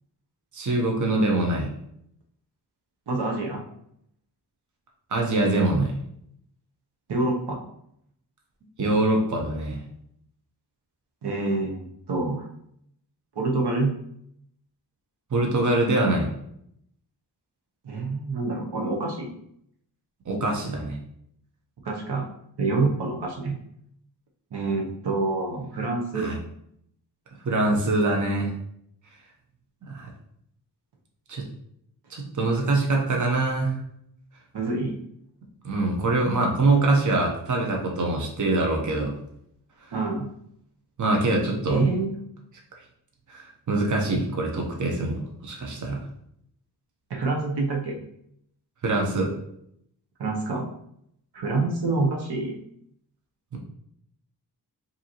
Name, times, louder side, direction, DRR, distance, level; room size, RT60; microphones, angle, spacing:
voice 1, 0.5-1.7 5.1-5.9 8.8-9.8 15.3-16.3 20.3-21.0 26.1-26.4 27.4-28.5 29.9-30.1 31.3-31.4 32.1-33.7 35.6-39.1 41.0-41.8 43.3-46.0 48.8-49.3 53.5-53.6, right 2 dB, 45° right, 0 dB, 0.8 m, -24 dB
voice 2, 3.1-3.6 7.1-7.6 11.2-12.5 13.4-13.9 17.8-19.3 21.8-22.2 22.6-23.6 24.5-26.3 34.5-35.0 39.9-40.3 41.7-42.1 47.1-48.0 50.2-50.7 51.3-52.5, right 3 dB, 80° right, 0 dB, 0.8 m, -26 dB
5.1 x 2.8 x 2.9 m, 0.72 s
wide cardioid pair, 130°, 40 cm